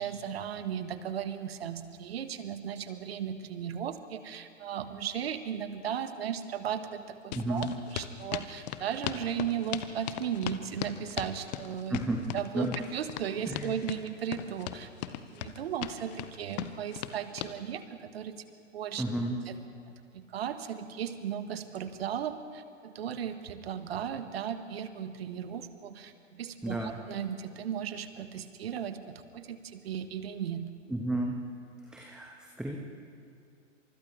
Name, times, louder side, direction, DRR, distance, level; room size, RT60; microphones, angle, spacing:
voice 1, 0.0-12.0 12.3-18.4 18.7-19.0 19.5-19.6 20.1-30.7, right 8 dB, 50° right, 10 dB, 1.5 m, -36 dB
sound 1, 7.3-17.5, left 13 dB, 35° left, 1.0 m, -38 dB
voice 2, 7.3-7.7 11.9-12.2 12.5-12.7 13.4-13.8 19.0-19.4 26.6-27.0 30.9-31.4 31.8-32.8, right 1 dB, ahead, 0 dB, 1.2 m, -32 dB
29.5 x 26.5 x 3.3 m, 2.5 s
figure-of-eight pair, 110°, 38 cm